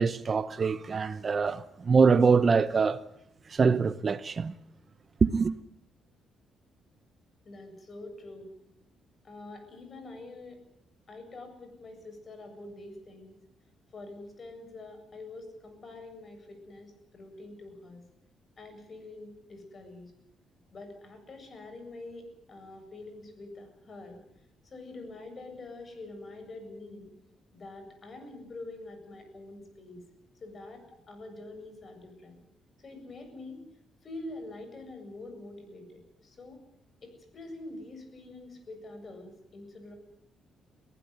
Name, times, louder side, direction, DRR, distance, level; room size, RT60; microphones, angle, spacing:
voice 1, 0.0-3.0 3.5-4.5 5.2-5.5, right 5 dB, 40° right, 0.8 m, -24 dB
voice 2, 7.4-8.5 9.2-10.6 11.1-13.4 13.9-18.0 18.6-20.1 20.7-24.2 24.6-27.1 27.5-30.0 30.4-32.4 32.8-33.6 34.0-36.6 37.0-39.9, left 2 dB, 40° left, 7.7 m, -45 dB
22.5 x 15.5 x 9.5 m
cardioid pair, 90°, 0 cm